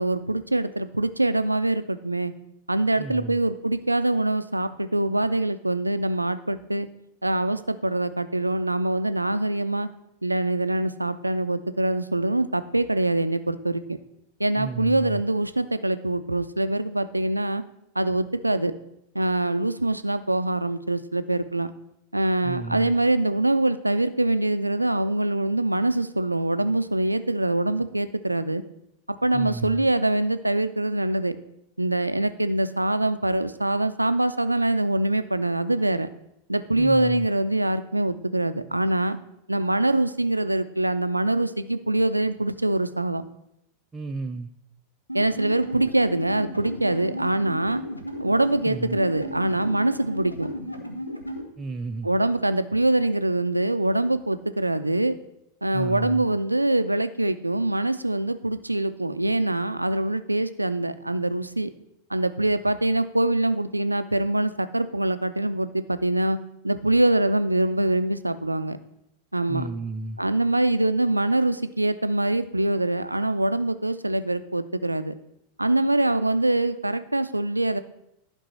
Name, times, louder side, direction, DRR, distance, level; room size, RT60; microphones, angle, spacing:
voice 1, 0.0-2.3 2.7-6.9 7.2-9.9 10.2-14.0 14.4-17.6 18.0-18.7 19.1-21.7 22.1-28.6 29.2-31.4 31.8-36.1 36.5-39.2 39.5-43.2 45.1-47.8 48.2-50.5 52.0-55.2 55.6-61.7 62.1-66.4 66.6-68.8 69.3-69.7 70.2-75.1 75.6-77.8, right 1 dB, 85° right, 12 dB, 0.4 m, -24 dB
voice 2, 3.0-3.4 14.6-15.2 22.4-22.9 29.3-29.8 36.8-37.3 43.9-44.5 48.6-49.0 51.6-52.1 55.7-56.3 69.5-70.2, right 3 dB, 15° right, 5 dB, 0.4 m, -33 dB
sound 1, 45.1-51.4, left 1 dB, 90° left, 0.9 m, -35 dB
11.5 x 5.3 x 4.2 m, 0.80 s
figure-of-eight pair, 90°, 0 cm